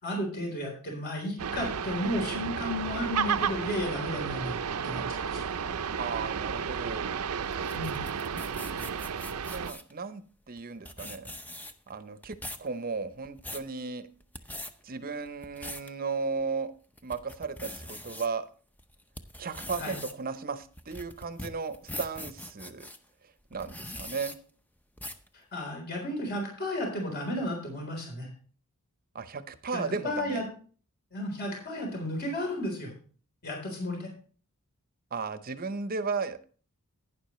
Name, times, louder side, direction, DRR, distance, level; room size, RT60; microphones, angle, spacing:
voice 1, 0.0-4.6 4.8-5.4 7.7-8.1 19.8-20.0 25.3-28.3 29.7-30.4 31.1-32.9 33.4-34.1, left 1 dB, 45° left, 1 dB, 3.8 m, -33 dB
sound 1, 1.4-9.7, right 6 dB, 80° right, 0.6 m, -32 dB
voice 2, 6.0-7.2 9.5-11.3 11.9-14.1 14.8-16.7 17.0-18.4 19.4-22.9 23.5-24.4 29.1-30.4 35.1-36.6, right 4 dB, 40° right, 12 dB, 0.7 m, -35 dB
sound 2, 7.5-9.9 10.6-10.7 10.8-11.9 12.2-12.7 13.1-13.7 14.2-14.7 15.3-15.9 16.4-16.5 17.0-18.3 18.8-23.0 23.5-24.4 25.0-25.3, left 1 dB, 10° left, 0.6 m, -42 dB
11.5 x 9.8 x 3.1 m, 0.41 s
head